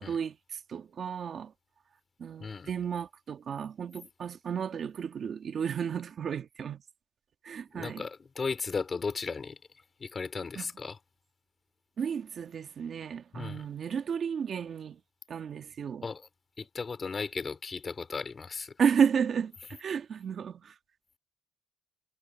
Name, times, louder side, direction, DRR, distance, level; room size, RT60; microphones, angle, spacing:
voice 1, 0.0-1.5 2.2-6.8 7.4-8.0 10.5-10.7 12.0-15.0 15.3-16.1 18.8-20.7, right 7 dB, 55° right, 1.6 m, -32 dB
voice 2, 7.7-9.6 10.0-11.0 13.3-13.7 16.0-16.3 16.6-18.7, left 4 dB, 35° left, 3.0 m, -36 dB
cardioid pair, 90°, 0 cm